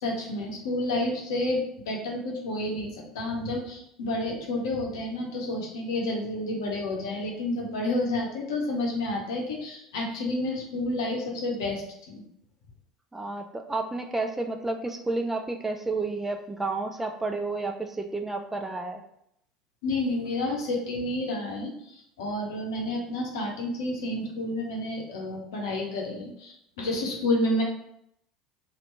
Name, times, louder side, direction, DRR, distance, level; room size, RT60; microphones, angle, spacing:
voice 1, 0.0-2.9 3.1-12.2 19.8-27.6, left 1 dB, 70° left, 0 dB, 0.7 m, -30 dB
voice 2, 13.1-19.0, right 3 dB, 10° right, 5 dB, 0.4 m, -31 dB
2.8 x 2.5 x 3.1 m, 0.74 s
figure-of-eight pair, 70°, 2 cm